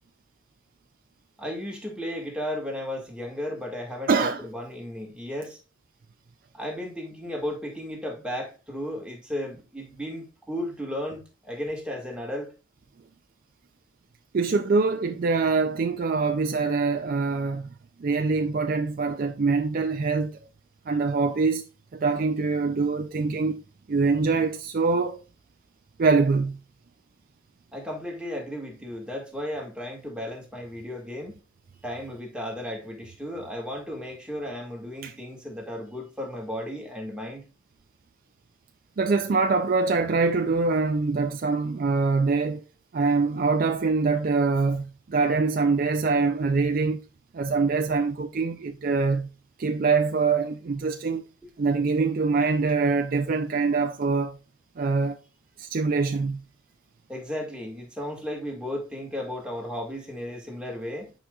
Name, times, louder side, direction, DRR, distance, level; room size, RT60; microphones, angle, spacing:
voice 1, 1.4-5.6 6.5-12.5 27.7-31.4 31.8-37.4 57.1-61.1, left 1 dB, 5° right, 1.7 m, -34 dB
voice 2, 4.1-4.4 14.3-17.7 18.0-20.4 20.9-21.6 21.9-23.6 23.9-25.2 26.0-26.6 35.0-35.1 39.0-42.6 42.9-47.1 47.3-49.3 49.6-51.3 51.6-54.4 54.8-55.2 55.6-56.4, right 4 dB, 45° right, 0.4 m, -24 dB
8.6 x 5.0 x 2.3 m
head